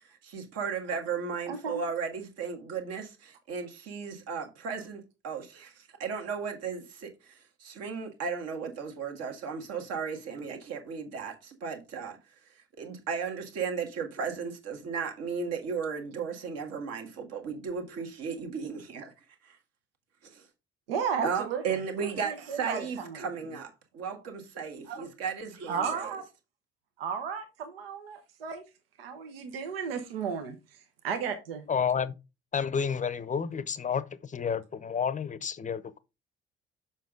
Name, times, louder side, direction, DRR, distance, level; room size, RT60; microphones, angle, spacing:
voice 1, 0.0-12.2 12.8-19.1 19.4-19.6 20.2-20.4 21.2-26.1, right 6 dB, 55° right, 1.6 m, -35 dB
voice 2, 1.5-1.8 20.9-21.6 22.0-23.2 24.9-25.1 25.7-26.2 27.0-28.6 29.0-30.6 31.0-31.6, right 6 dB, 75° right, 0.9 m, -34 dB
voice 3, 31.7-32.1 32.5-36.0, left 7 dB, 25° left, 0.7 m, -30 dB
7.2 x 5.4 x 3.7 m
figure-of-eight pair, 45°, 30 cm